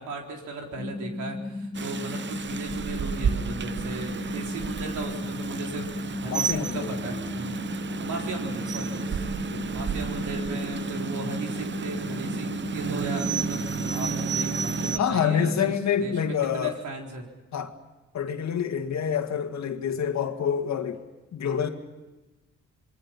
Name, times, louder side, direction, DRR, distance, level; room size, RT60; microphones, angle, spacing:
voice 1, 0.0-7.6 8.0-9.3 9.7-17.2, right 3 dB, 90° right, 4.1 m, -37 dB
sound 1, 0.8-16.3, left 2 dB, 35° left, 3.4 m, -35 dB
Rain, 1.7-15.0, right 7 dB, 40° right, 0.8 m, -32 dB
voice 2, 6.3-6.9 9.5-9.6 15.0-16.8 17.5-17.7 18.1-21.0 21.3-21.7, left 8 dB, 70° left, 2.1 m, -27 dB
27.5 x 22.0 x 5.8 m
cardioid pair, 80°, 29 cm